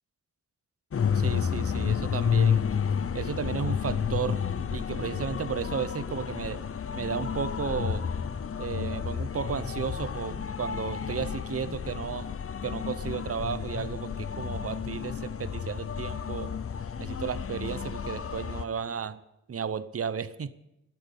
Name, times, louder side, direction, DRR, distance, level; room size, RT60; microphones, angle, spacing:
sound 1, 0.9-18.6, left 7 dB, 50° left, 0.7 m, -31 dB
voice 1, 1.1-2.7 3.1-4.4 4.7-6.6 6.9-8.1 8.6-12.3 12.6-16.5 17.0-19.2 19.5-20.5, right 6 dB, 50° right, 14 dB, 0.8 m, -33 dB
14.0 x 11.0 x 8.2 m, 0.87 s
wide cardioid pair, 95°, 30 cm